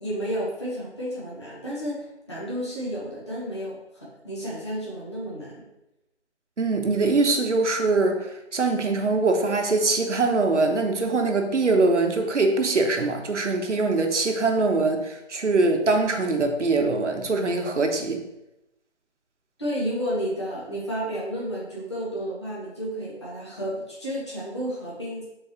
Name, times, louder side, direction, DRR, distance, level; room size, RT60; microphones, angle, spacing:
voice 1, 0.0-5.6 19.6-25.2, equal, 25° left, -7 dB, 0.9 m, -31 dB
voice 2, 6.6-18.2, right 3 dB, 80° right, 4 dB, 0.9 m, -23 dB
4.8 x 3.8 x 2.8 m, 0.91 s
figure-of-eight pair, 170°, 35 cm